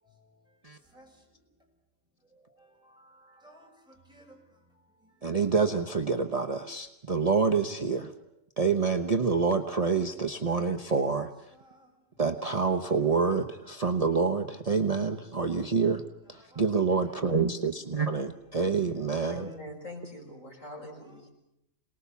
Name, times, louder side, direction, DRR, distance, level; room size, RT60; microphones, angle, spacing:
voice 1, 0.0-0.4 0.8-1.4 2.5-5.4 10.2-10.6 11.5-11.9 16.3-16.6 16.9-17.3 19.3-19.6 20.9-21.3, right 1 dB, 5° right, 7.0 m, -59 dB
voice 2, 5.2-8.1 8.6-11.3 12.2-16.0 16.6-19.5, right 5 dB, 30° right, 1.0 m, -27 dB
voice 3, 19.3-21.3, left 1 dB, 75° left, 6.2 m, -43 dB
27.5 x 20.0 x 7.1 m
omnidirectional pair, 1.3 m